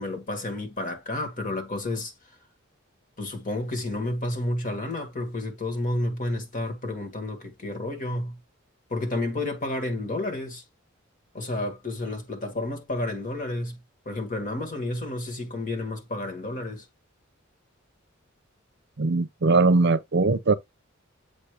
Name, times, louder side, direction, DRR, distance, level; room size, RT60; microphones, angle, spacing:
voice 1, 0.0-2.1 3.2-8.4 8.9-10.6 11.3-13.8 14.1-16.8, left 2 dB, 40° left, 1.9 m, -31 dB
voice 2, 19.0-20.5, right 3 dB, 55° right, 0.7 m, -21 dB
7.5 x 2.7 x 5.0 m
head